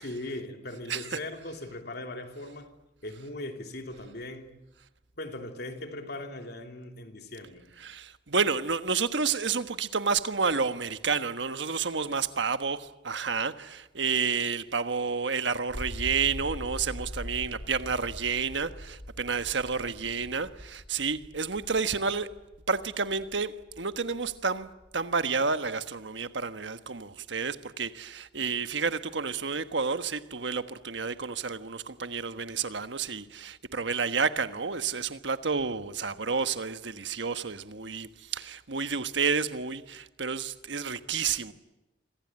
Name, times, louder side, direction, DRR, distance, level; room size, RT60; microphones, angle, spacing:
voice 1, 0.0-2.7 3.0-4.6 5.2-7.7 13.9-14.1, left 1 dB, 55° left, 3.1 m, -39 dB
voice 2, 7.8-22.3 22.7-41.5, right 5 dB, 65° right, 1.3 m, -30 dB
sound 1, 15.7-25.8, equal, 85° left, 5.5 m, -43 dB
26.5 x 25.5 x 8.9 m
head